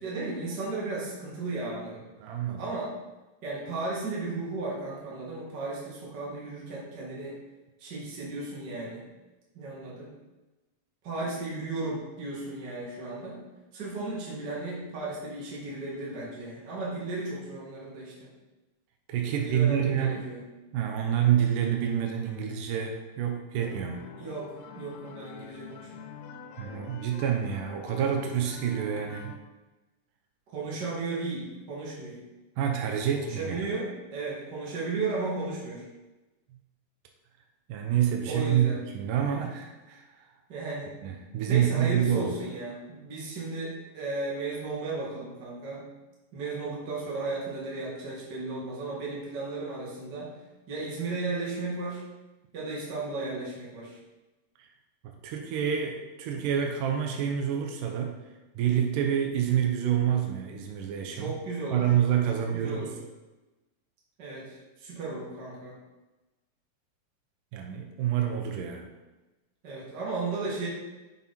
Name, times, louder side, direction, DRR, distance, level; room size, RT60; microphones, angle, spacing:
voice 1, 0.0-2.0 2.6-2.9 3.4-7.4 7.8-9.0 9.5-10.1 11.0-13.4 13.7-18.1 19.2-20.4 24.2-26.0 30.5-32.2 32.9-35.8 38.3-38.8 40.5-40.9 41.5-45.9 46.3-50.3 50.7-52.0 52.5-54.0 61.1-61.8 62.3-62.9 64.2-65.7 69.6-70.7, right 3 dB, 35° right, -5 dB, 2.3 m, -35 dB
voice 2, 2.2-2.7 19.1-20.3 20.7-24.0 26.6-29.3 32.6-33.7 37.7-38.7 38.9-40.2 41.0-42.3 54.6-54.7 55.0-58.2 58.6-61.3 61.7-62.9 67.5-68.9, right 9 dB, 80° right, 2 dB, 2.3 m, -27 dB
sound 1, 23.6-29.4, left 6 dB, 75° left, 1.9 m, -45 dB
7.6 x 6.3 x 4.3 m, 1.1 s
omnidirectional pair, 4.0 m